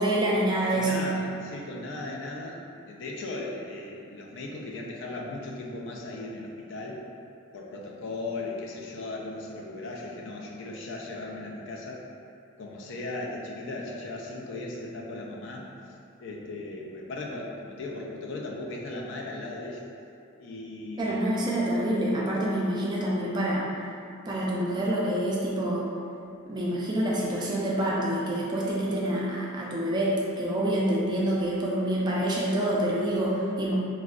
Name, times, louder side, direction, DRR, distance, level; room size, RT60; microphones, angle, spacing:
voice 1, 0.0-1.0 21.0-23.6 24.3-25.8 26.5-33.7, right 1 dB, 20° right, -5 dB, 0.3 m, -27 dB
voice 2, 0.7-2.6 2.9-7.0 7.5-12.1 12.6-15.7 16.2-19.8 20.3-21.2 22.5-22.7, left 2 dB, 60° left, -1 dB, 0.3 m, -37 dB
3.5 x 2.1 x 2.3 m, 2.6 s
head